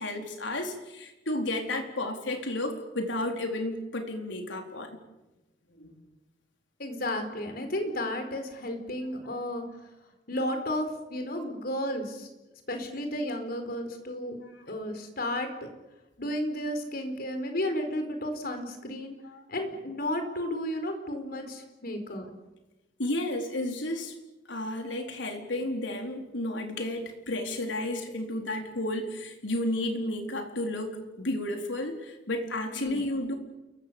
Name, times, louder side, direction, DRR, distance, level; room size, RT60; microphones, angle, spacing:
voice 1, 0.0-5.0 5.7-6.0 9.3-9.4 19.2-19.4 23.0-24.1 24.5-33.3, left 1 dB, 85° left, 3 dB, 4.2 m, -32 dB
voice 2, 6.8-9.7 10.3-12.3 12.7-14.4 14.7-15.7 16.2-19.1 19.5-22.3 32.7-33.0, left 1 dB, 55° left, 6 dB, 4.5 m, -33 dB
29.0 x 23.0 x 7.0 m, 1.1 s
head